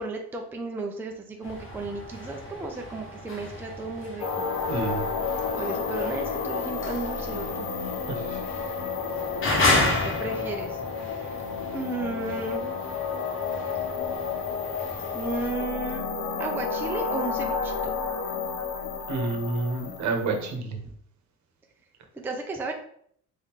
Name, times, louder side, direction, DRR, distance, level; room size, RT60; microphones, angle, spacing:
voice 1, 0.0-4.5 5.5-7.7 9.7-10.8 11.7-12.7 15.1-16.0 16.4-17.7 22.2-22.7, right 3 dB, 5° right, 2 dB, 0.4 m, -34 dB
sound 1, 1.4-15.5, left 2 dB, 35° left, 1.1 m, -33 dB
sound 2, 4.2-20.5, left 5 dB, 70° left, 1.0 m, -31 dB
voice 2, 4.7-5.0 8.1-8.4 19.1-20.8, right 3 dB, 55° right, 4 dB, 1.0 m, -29 dB
3.6 x 3.0 x 3.6 m, 0.64 s
cardioid pair, 110°, 34 cm